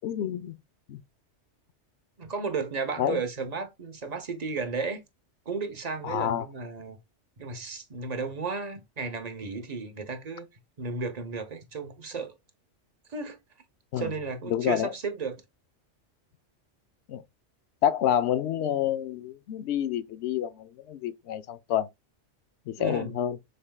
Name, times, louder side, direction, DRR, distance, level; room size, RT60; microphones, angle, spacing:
voice 1, 0.0-0.6 0.9-1.0 3.0-3.2 6.0-6.5 13.9-14.1 14.5-14.9 17.1-17.2 17.8-21.9 22.7-23.4, left 10 dB, 70° left, 0.8 m, -28 dB
voice 2, 2.2-5.0 5.5-7.0 7.4-10.5 10.8-12.4 13.1-13.4 14.0-15.4 22.8-23.1, right 4 dB, 40° right, 0.9 m, -34 dB
6.4 x 3.5 x 2.3 m
omnidirectional pair, 1.2 m